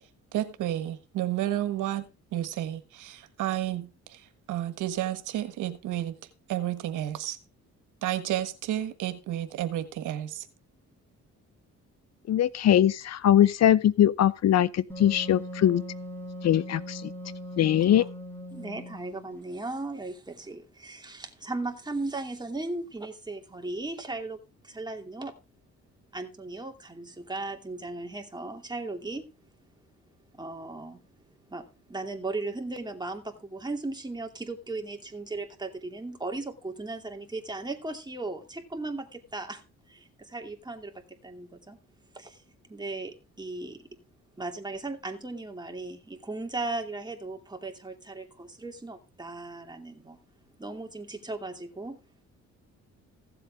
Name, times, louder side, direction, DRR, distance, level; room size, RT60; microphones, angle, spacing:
voice 1, 0.3-4.2 4.5-6.1 6.5-7.4 8.0-10.4, right 12 dB, 85° right, 1.5 m, -31 dB
voice 2, 12.3-15.8 16.4-17.1 17.6-18.0, left 11 dB, 60° left, 0.7 m, -21 dB
Wind instrument woodwind instrument, 14.9-19.3, equal, 5° left, 3.5 m, -40 dB
voice 3, 18.5-24.4 24.6-25.3 26.1-29.3 30.4-31.0 31.5-39.6 39.9-41.8 42.1-42.4 42.7-43.8 44.4-50.2 50.6-52.0, right 2 dB, 15° right, 2.7 m, -37 dB
16.0 x 7.7 x 3.5 m
cardioid pair, 90°, 30 cm